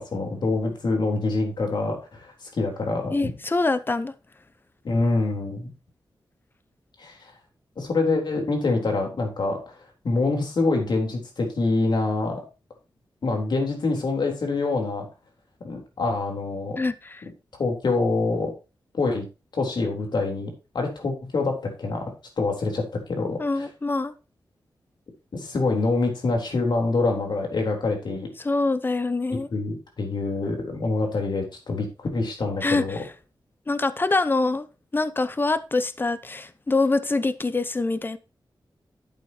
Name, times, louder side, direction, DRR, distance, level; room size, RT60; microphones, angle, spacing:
voice 1, 0.0-3.3 4.8-5.7 7.0-7.2 7.8-9.8 10.0-12.4 13.2-15.1 15.6-16.8 17.6-18.5 18.9-19.3 19.5-23.7 25.3-28.3 29.5-33.0, left 3 dB, 65° left, 3.6 m, -26 dB
voice 2, 3.1-4.1 16.8-17.2 23.4-24.1 28.4-29.5 32.6-33.0 33.7-34.7 34.9-38.2, left 3 dB, 25° left, 0.7 m, -25 dB
11.5 x 8.2 x 2.9 m
wide cardioid pair, 105°, 8 cm